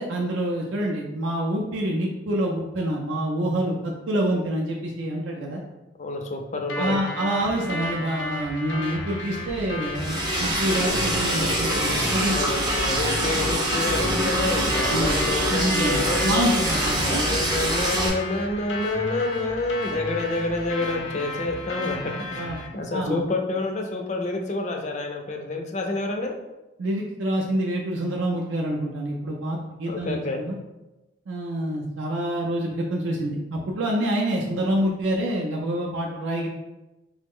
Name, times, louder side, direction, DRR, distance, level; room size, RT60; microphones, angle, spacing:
voice 1, 0.0-5.6 6.7-12.4 14.9-15.2 15.5-17.2 22.1-22.6 22.9-23.2 26.8-30.6 31.3-36.5, right 1 dB, 90° right, -1 dB, 0.4 m, -27 dB
voice 2, 6.0-7.0 12.3-16.6 17.0-22.0 22.3-22.4 22.7-26.3 29.9-30.4, left 2 dB, 40° left, 3 dB, 0.4 m, -28 dB
sound 1, 6.7-22.7, left 2 dB, 80° left, 0.6 m, -33 dB
Liquid, 10.0-18.1, right 1 dB, 20° right, 0.5 m, -25 dB
3.1 x 2.0 x 3.5 m, 1.0 s
head